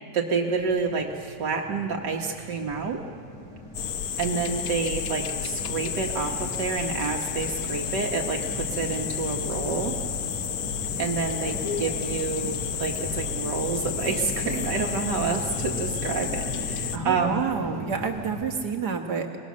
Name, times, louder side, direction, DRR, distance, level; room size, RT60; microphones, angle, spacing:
voice 1, 0.1-3.0 4.2-10.0 11.0-17.5, right 5 dB, 90° right, 0 dB, 2.1 m, -28 dB
sound 1, 0.5-18.6, equal, 20° left, 4.9 m, -39 dB
sound 2, 3.7-17.0, left 8 dB, 65° left, 1.2 m, -31 dB
voice 2, 16.9-19.4, right 6 dB, 70° right, 4 dB, 2.1 m, -29 dB
23.0 x 20.0 x 6.4 m, 2.3 s
omnidirectional pair, 1.8 m